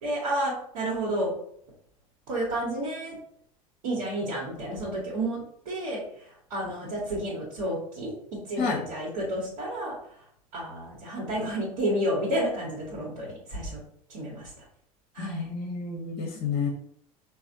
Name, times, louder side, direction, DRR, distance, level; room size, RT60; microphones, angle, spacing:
voice 1, 0.0-1.3 2.3-3.2 3.8-8.1 8.5-9.9 10.5-13.8 14.1-14.5 15.1-15.5, right 1 dB, 65° right, -7 dB, 1.2 m, -31 dB
voice 2, 15.2-16.7, left 5 dB, 35° left, 1 dB, 0.8 m, -30 dB
4.1 x 2.3 x 2.6 m, 0.67 s
figure-of-eight pair, 75°, 19 cm